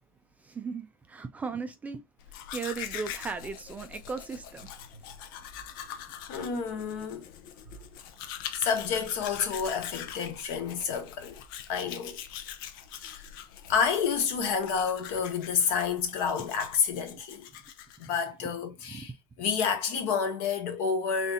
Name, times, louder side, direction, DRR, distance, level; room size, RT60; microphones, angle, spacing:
voice 1, 0.4-2.0 2.5-4.7 18.9-19.0, right 5 dB, 15° right, 0.4 m, -36 dB
Domestic sounds home sounds, 2.2-18.3, left 10 dB, 80° left, 0.7 m, -43 dB
voice 2, 6.3-7.3 8.5-11.4 11.7-12.2 13.0-13.2 13.7-17.5 18.0-19.1 19.4-21.3, left 6 dB, 60° left, 1.2 m, -29 dB
4.1 x 3.5 x 2.6 m
cardioid pair, 165°, 11 cm